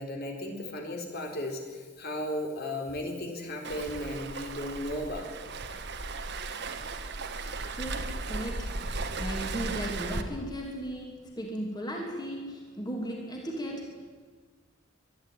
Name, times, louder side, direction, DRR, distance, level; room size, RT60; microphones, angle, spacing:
voice 1, 0.0-5.2, left 1 dB, 55° left, 2 dB, 3.9 m, -35 dB
Waves surf, 3.6-10.2, right 3 dB, 60° right, 1.6 m, -36 dB
voice 2, 7.7-14.1, equal, 20° left, 0 dB, 3.0 m, -36 dB
24.0 x 11.5 x 9.3 m, 1.5 s
head